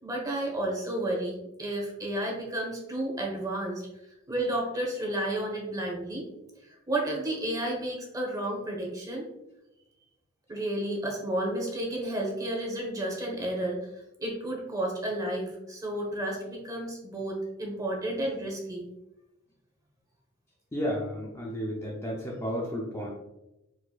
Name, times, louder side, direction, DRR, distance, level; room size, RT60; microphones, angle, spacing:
voice 1, 0.0-3.8 4.3-6.3 6.6-9.3 10.5-13.8 14.2-18.9, right 1 dB, 20° right, -1 dB, 1.1 m, -32 dB
voice 2, 20.7-23.1, equal, 15° left, -3 dB, 0.6 m, -32 dB
4.5 x 4.2 x 2.3 m, 0.93 s
head